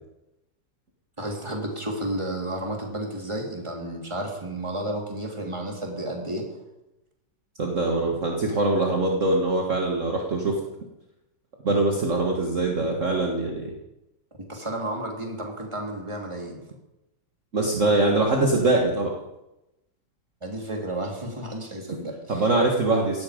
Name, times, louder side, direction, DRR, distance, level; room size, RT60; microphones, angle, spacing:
voice 1, 1.2-6.5 14.4-16.6 20.4-22.4, right 1 dB, 15° right, 1 dB, 3.2 m, -32 dB
voice 2, 7.6-10.5 11.6-13.7 17.5-19.1 22.3-23.2, right 2 dB, 40° right, 0 dB, 2.0 m, -23 dB
18.0 x 14.0 x 5.2 m, 0.93 s
omnidirectional pair, 2.0 m